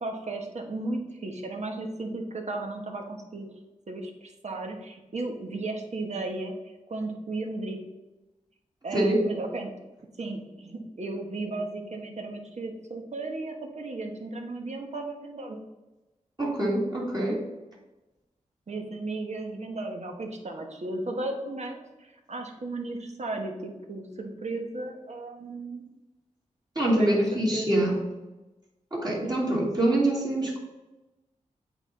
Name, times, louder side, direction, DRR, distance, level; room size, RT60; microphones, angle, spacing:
voice 1, 0.0-3.5 3.9-6.5 6.9-7.8 8.8-9.7 10.2-15.6 18.7-25.8 27.0-27.1 27.5-27.7 29.2-29.3, right 2 dB, 55° right, 3 dB, 1.3 m, -35 dB
voice 2, 8.9-9.2 16.4-17.4 26.8-28.0 28.9-30.6, right 1 dB, 30° right, -4 dB, 2.2 m, -25 dB
8.1 x 3.9 x 4.1 m, 1.0 s
cardioid pair, 60°, 14 cm